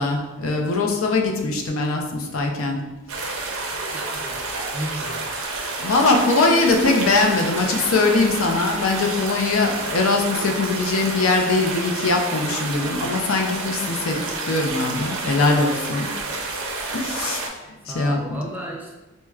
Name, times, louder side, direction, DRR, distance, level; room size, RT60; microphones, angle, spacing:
voice 1, 0.0-2.9 3.2-3.5 5.8-16.1 16.9-17.4 17.9-18.4, left 3 dB, 75° left, 2 dB, 0.5 m, -21 dB
sound 1, 3.1-17.5, right 3 dB, 85° right, 0.6 m, -29 dB
voice 2, 3.9-4.5 4.7-5.2 17.9-18.9, right 1 dB, 10° right, -2 dB, 0.3 m, -33 dB
4.5 x 2.1 x 2.3 m, 1.1 s
head